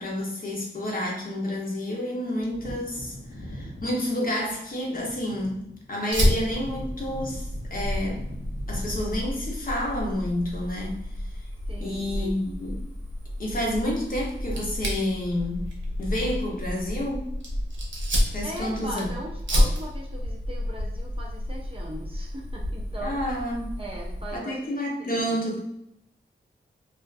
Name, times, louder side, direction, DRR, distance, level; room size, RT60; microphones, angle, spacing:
voice 1, 0.0-8.2 8.7-11.0 11.8-12.8 13.4-15.6 16.0-17.3 18.3-19.1 23.0-23.8 24.3-25.6, left 1 dB, 45° left, -2 dB, 0.7 m, -29 dB
Wind / Thunder, 2.4-10.6 10.9-11.0, equal, 90° left, 0.6 m, -42 dB
Fire, 6.1-24.4, equal, 75° right, 0.7 m, -30 dB
voice 2, 11.7-12.5 18.4-23.2 23.8-25.4, right 1 dB, 30° right, -2 dB, 0.4 m, -39 dB
2.4 x 2.4 x 2.3 m, 0.76 s
wide cardioid pair, 90°, 20 cm